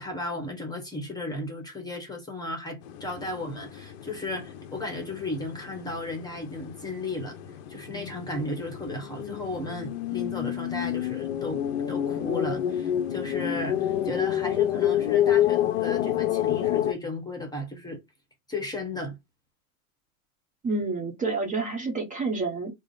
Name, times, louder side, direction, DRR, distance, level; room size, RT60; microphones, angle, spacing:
voice 1, 0.0-7.4 7.7-18.0 18.5-19.2, left 2 dB, 10° left, 1.0 m, -35 dB
sound 1, 2.8-16.9, left 11 dB, 50° left, 0.7 m, -29 dB
voice 2, 20.6-22.7, right 3 dB, 20° right, 1.0 m, -29 dB
3.7 x 2.0 x 3.8 m
hypercardioid pair, 110°, 41 cm